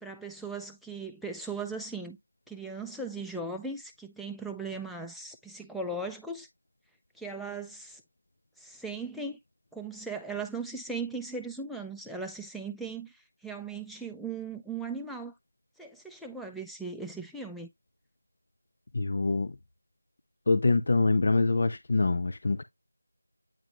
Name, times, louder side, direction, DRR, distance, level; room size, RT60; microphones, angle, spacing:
voice 1, 0.0-2.2 2.5-6.5 7.2-8.0 8.6-9.4 9.7-15.3 15.8-17.7, right 3 dB, ahead, 0.4 m, -38 dB
voice 2, 18.9-19.5 20.5-22.6, left 3 dB, 45° left, 0.6 m, -25 dB
9.0 x 3.7 x 2.9 m
figure-of-eight pair, 170°, 0 cm